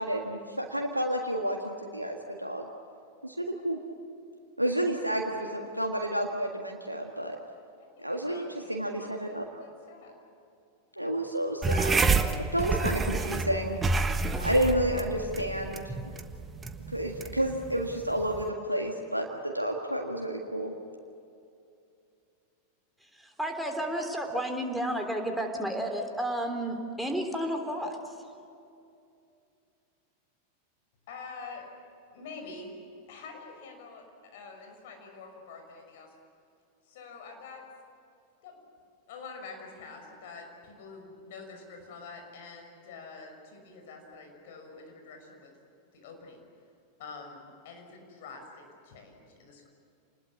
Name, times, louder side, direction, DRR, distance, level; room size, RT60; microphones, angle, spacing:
voice 1, 0.0-2.7 3.2-3.8 4.6-7.4 8.0-9.5 11.0-12.1 12.5-13.8 14.4-15.9 16.9-20.7, right 1 dB, 90° right, 1 dB, 1.7 m, -30 dB
voice 2, 7.8-10.2 31.1-31.7 32.1-32.8 33.1-36.1 36.8-37.7 38.4-38.6 39.1-45.5 45.9-46.5 47.0-49.7, left 4 dB, 55° left, 3 dB, 6.0 m, -46 dB
sound 1, 11.6-18.5, right 3 dB, 15° right, 1.3 m, -29 dB
voice 3, 23.0-28.3, right 1 dB, ahead, 3 dB, 3.3 m, -32 dB
28.0 x 20.5 x 8.5 m, 2.6 s
figure-of-eight pair, 90°, 0 cm